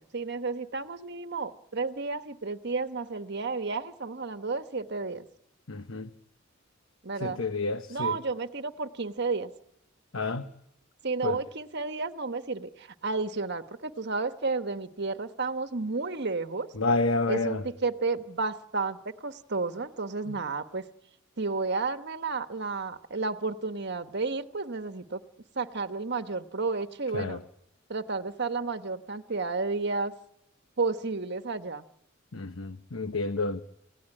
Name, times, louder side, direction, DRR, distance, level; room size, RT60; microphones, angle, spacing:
voice 1, 0.0-5.3 7.0-7.4 7.9-9.5 11.0-16.7 17.3-20.8 21.4-25.2 25.5-27.4 27.9-30.1 30.8-31.8, right 3 dB, 55° right, 1.3 m, -32 dB
voice 2, 5.7-6.1 7.2-8.2 10.1-10.4 11.2-11.4 16.8-17.6 27.1-27.4 32.3-33.6, left 3 dB, 90° left, 1.1 m, -29 dB
28.5 x 17.0 x 10.0 m
head